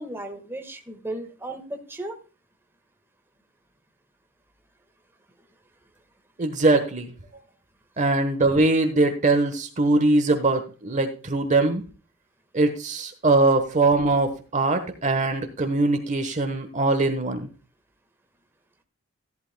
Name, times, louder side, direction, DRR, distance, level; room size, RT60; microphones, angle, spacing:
voice 1, 0.0-2.2, right 1 dB, 10° right, 4 dB, 1.5 m, -35 dB
voice 2, 6.4-7.1 8.0-11.8 12.5-17.5, right 2 dB, 35° right, 6 dB, 1.2 m, -22 dB
14.5 x 11.5 x 2.2 m, 0.36 s
head